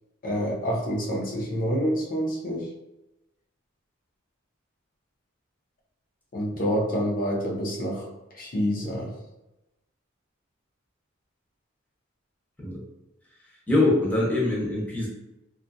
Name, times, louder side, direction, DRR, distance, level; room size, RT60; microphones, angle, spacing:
voice 1, 0.2-2.7 6.3-8.1 8.3-9.1, equal, 45° left, -1 dB, 0.6 m, -27 dB
voice 2, 13.7-15.1, left 2 dB, 10° left, -5 dB, 0.7 m, -23 dB
2.6 x 2.3 x 2.6 m, 0.96 s
head